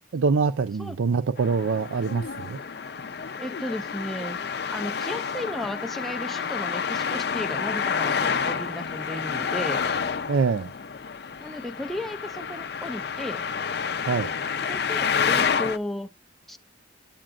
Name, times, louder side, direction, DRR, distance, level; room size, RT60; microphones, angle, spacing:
voice 1, 0.1-2.6 10.3-10.7 14.1-14.3, right 5 dB, 85° right, 0.4 m, -24 dB
voice 2, 0.8-1.2 3.4-4.4 4.7-9.8 11.4-13.5 14.6-16.1 16.5-16.6, left 1 dB, ahead, 0.4 m, -34 dB
Traffic noise roadway noise, 1.4-15.8, left 6 dB, 55° left, 0.5 m, -29 dB
8.9 x 8.7 x 2.4 m
head